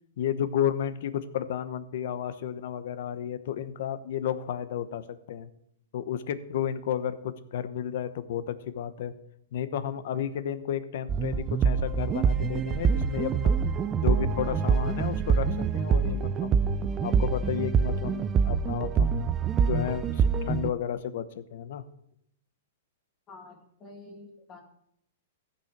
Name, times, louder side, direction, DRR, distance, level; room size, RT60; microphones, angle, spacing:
voice 1, 0.2-5.5 5.9-9.1 9.5-13.5 14.0-16.6 17.0-19.1 19.7-21.8, left 9 dB, 60° left, 12 dB, 0.9 m, -32 dB
sound 1, 11.1-20.7, right 6 dB, 20° right, 0.4 m, -25 dB
voice 2, 23.3-24.6, left 3 dB, 25° left, 2 dB, 2.1 m, -48 dB
15.0 x 5.6 x 5.9 m, 0.74 s
hypercardioid pair, 155°, 0 cm